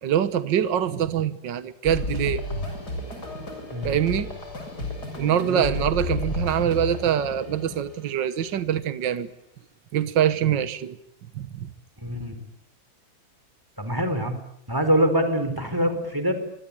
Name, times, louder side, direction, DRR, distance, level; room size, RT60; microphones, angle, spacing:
voice 1, 0.0-2.4 3.8-4.3 5.2-9.3 9.9-11.0 11.4-11.7, right 9 dB, 70° right, 12 dB, 1.9 m, -24 dB
sound 1, 1.8-7.9, left 2 dB, 55° left, 7.6 m, -32 dB
voice 2, 12.0-12.4 13.8-14.4 14.7-16.3, equal, 10° right, 8 dB, 4.5 m, -24 dB
25.5 x 25.0 x 8.8 m, 0.73 s
omnidirectional pair, 2.1 m